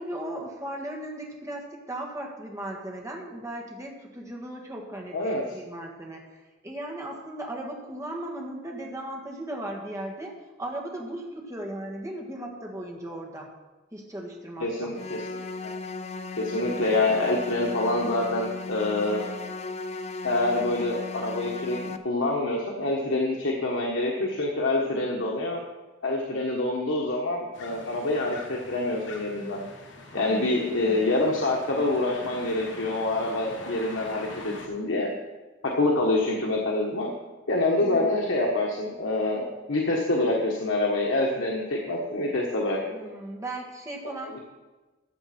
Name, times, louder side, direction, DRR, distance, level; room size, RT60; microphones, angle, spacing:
voice 1, 0.0-6.2 6.6-10.3 10.6-13.5 13.9-14.9 16.5-17.0 30.1-31.1 37.8-38.4 42.9-44.4, right 1 dB, 15° right, 0 dB, 1.7 m, -37 dB
voice 2, 14.6-15.2 15.6-15.7 16.4-19.2 20.2-21.8 22.0-25.6 26.0-29.6 30.1-35.1 35.8-37.1 37.5-42.9 44.2-44.4, left 2 dB, 80° left, -2 dB, 1.3 m, -26 dB
sound 1, 14.9-22.0, left 3 dB, 35° left, 0.6 m, -36 dB
sound 2, 27.5-34.7, left 2 dB, 65° left, 1.6 m, -43 dB
14.0 x 7.0 x 4.4 m, 1.2 s
head